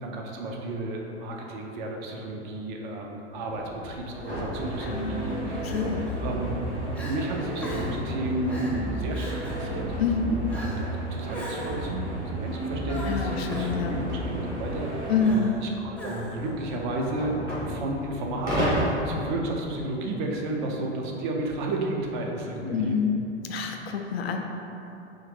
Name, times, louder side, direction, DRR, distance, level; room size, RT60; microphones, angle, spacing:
voice 1, 0.0-6.5 7.0-9.9 10.2-15.0 15.3-17.4 17.7-23.0, right 1 dB, 45° right, 0 dB, 0.6 m, -32 dB
sound 1, 3.3-13.0 13.7-18.9, equal, 90° right, 1.2 m, -36 dB
Crying sobbing, 4.1-4.4 5.6-6.2 6.6-6.7 6.9-7.2 7.6-8.0 8.5-8.8 9.1-9.6 10.5-10.9 11.3-11.9 12.9-13.7 15.2-15.6 15.9-16.5, left 1 dB, 5° left, 0.7 m, -41 dB
sound 2, 4.5-15.3, right 1 dB, 75° right, 1.0 m, -33 dB
voice 2, 4.8-5.2 5.6-6.1 10.0-10.3 13.1-14.0 15.1-15.6 22.7-23.1 23.4-24.4, left 5 dB, 60° left, 3 dB, 0.4 m, -27 dB
3.5 x 3.0 x 3.2 m, 2.8 s
figure-of-eight pair, 85°, 35 cm